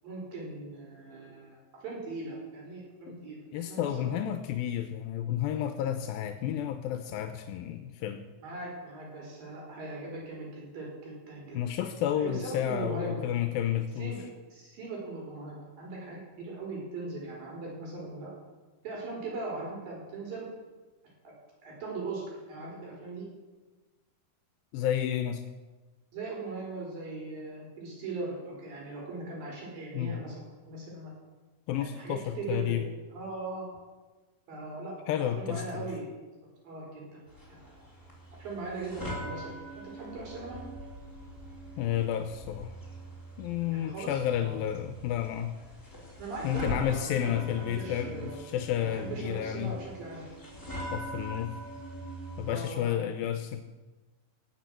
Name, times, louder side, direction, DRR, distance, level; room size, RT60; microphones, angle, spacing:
voice 1, 0.0-1.6 1.8-4.1 8.4-11.6 12.2-13.2 14.0-14.2 14.5-18.3 18.8-20.5 21.2-21.3 21.6-23.3 26.1-31.1 31.8-32.8 33.1-33.7 34.5-34.9 35.2-36.1 36.6-37.2 37.5-37.6 38.3-40.6 43.7-44.6 46.2-48.4 48.8-50.3 52.5-53.0, right 3 dB, 75° right, -3 dB, 6.2 m, -39 dB
voice 2, 3.5-8.3 11.5-14.1 24.7-25.4 29.9-30.2 31.7-32.9 35.1-35.9 41.8-42.7 43.4-45.5 46.4-49.8 50.9-51.5 52.4-53.6, left 10 dB, 85° left, 8 dB, 2.5 m, -31 dB
sound 1, 37.3-52.5, equal, 5° left, 3.0 m, -43 dB
18.0 x 7.8 x 7.5 m, 1.3 s
omnidirectional pair, 4.1 m